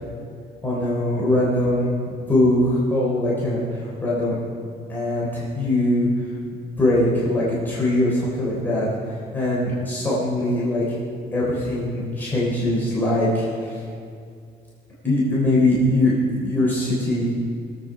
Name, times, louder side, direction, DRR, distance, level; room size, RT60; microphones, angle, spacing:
voice 1, 0.6-4.4 4.9-6.1 6.8-8.9 9.3-11.0 11.3-13.8 15.0-17.3, left 1 dB, 10° left, -8 dB, 3.4 m, -21 dB
22.0 x 8.1 x 4.8 m, 2.4 s
cardioid pair, 155°, 18 cm